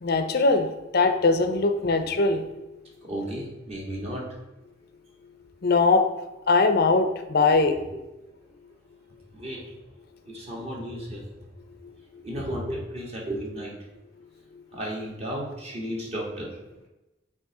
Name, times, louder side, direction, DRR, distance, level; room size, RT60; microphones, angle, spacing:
voice 1, 0.0-0.7 0.9-2.5 5.6-6.0 6.5-7.8, left 3 dB, 55° left, 7 dB, 0.6 m, -21 dB
voice 2, 3.1-4.2 9.3-9.6 10.3-11.3 12.2-13.7 14.7-16.5, equal, 35° right, -3 dB, 1.8 m, -33 dB
8.1 x 2.9 x 4.9 m, 1.0 s
head